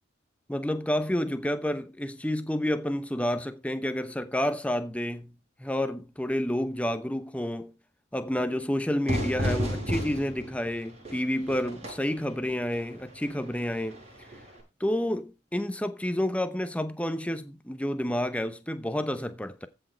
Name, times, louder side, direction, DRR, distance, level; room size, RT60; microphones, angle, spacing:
voice 1, 0.5-5.3 5.6-7.7 8.1-14.0 14.8-19.7, left 1 dB, 5° left, 0.9 m, -29 dB
Fire / Fireworks, 9.1-14.6, equal, 35° right, 6.7 m, -34 dB
14.5 x 6.5 x 4.5 m
head